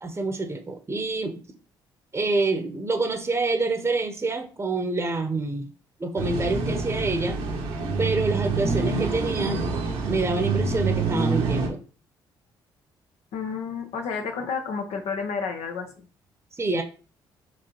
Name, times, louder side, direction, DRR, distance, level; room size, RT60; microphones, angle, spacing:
voice 1, 0.0-1.4 2.1-5.7 6.0-7.4 8.0-9.6 10.1-11.8 16.5-16.8, right 3 dB, 25° right, 5 dB, 0.9 m, -27 dB
sound 1, 6.2-11.7, right 4 dB, 80° right, 1.2 m, -26 dB
voice 2, 13.3-16.1, left 5 dB, 70° left, 5 dB, 1.0 m, -31 dB
5.1 x 3.2 x 3.0 m, 0.37 s
hypercardioid pair, 50°, 11 cm